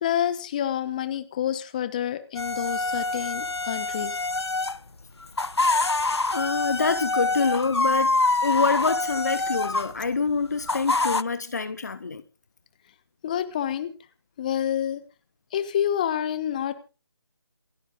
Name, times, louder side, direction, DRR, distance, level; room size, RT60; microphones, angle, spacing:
voice 1, 0.0-4.1 13.2-13.9 14.4-15.0 15.5-16.7, left 10 dB, 20° left, 1.2 m, -28 dB
sound 1, 2.4-4.8 5.2-9.9 10.7-11.2, left 3 dB, 80° left, 0.8 m, -25 dB
voice 2, 6.3-8.2 8.4-12.2, left 4 dB, 40° left, 1.0 m, -26 dB
28.0 x 9.9 x 3.7 m
figure-of-eight pair, 160°, 14 cm